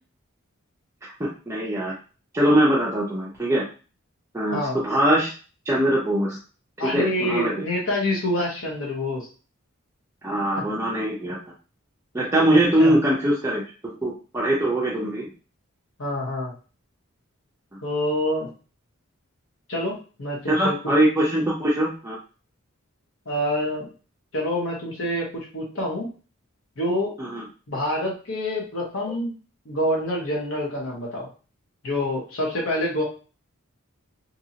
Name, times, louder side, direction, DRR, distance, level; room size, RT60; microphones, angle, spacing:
voice 1, 1.2-1.9 2.3-3.6 4.3-5.3 5.7-6.4 6.8-7.5 10.2-11.4 12.1-15.3 20.5-22.2 27.2-27.5, right 1 dB, 15° right, -5 dB, 0.4 m, -22 dB
voice 2, 6.8-9.2 12.5-13.0 16.0-16.5 17.8-18.5 19.7-20.8 23.3-23.9 24.3-26.1 26.8-27.2 27.7-29.3 29.7-31.3 31.8-33.0, left 1 dB, 70° left, -3 dB, 0.9 m, -26 dB
2.7 x 2.6 x 2.7 m, 0.36 s
head